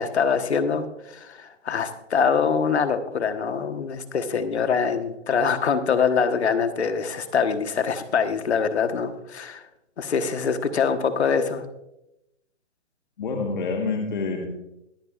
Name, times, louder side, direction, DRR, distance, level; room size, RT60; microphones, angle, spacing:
voice 1, 0.0-9.7 10.0-11.6, left 6 dB, 60° left, 9 dB, 1.3 m, -24 dB
voice 2, 13.2-14.5, left 4 dB, 40° left, 1 dB, 1.4 m, -27 dB
22.5 x 8.2 x 2.4 m, 0.85 s
hypercardioid pair, 175°, 37 cm